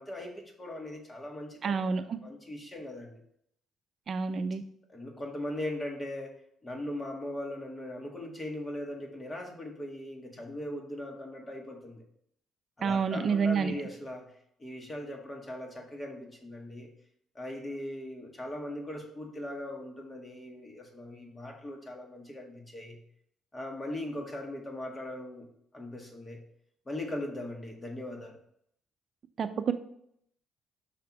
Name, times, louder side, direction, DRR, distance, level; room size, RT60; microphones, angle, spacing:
voice 1, 0.0-3.2 4.9-12.0 12.8-14.3 14.6-16.9 17.3-23.0 23.5-25.5 25.7-26.4 26.8-28.3, left 1 dB, 25° left, 1 dB, 1.7 m, -39 dB
voice 2, 1.6-2.2 4.1-4.6 12.8-13.7 29.4-29.7, right 5 dB, 55° right, 9 dB, 0.6 m, -28 dB
5.8 x 3.4 x 5.8 m, 0.71 s
supercardioid pair, 70°, 0 cm